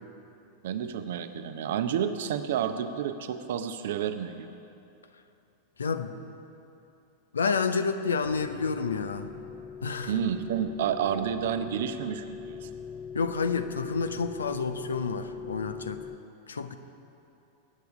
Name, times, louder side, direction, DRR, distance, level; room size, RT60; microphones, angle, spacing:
voice 1, 0.6-4.6 10.1-12.7, right 8 dB, 55° right, 9 dB, 0.7 m, -30 dB
voice 2, 5.8-6.2 7.3-9.3 9.8-10.1 13.1-16.0 16.5-16.7, left 5 dB, 70° left, 9 dB, 0.7 m, -29 dB
sound 1, 8.2-16.2, left 6 dB, 25° left, 0.6 m, -41 dB
20.0 x 9.4 x 5.0 m, 2.8 s
figure-of-eight pair, 90°, 0 cm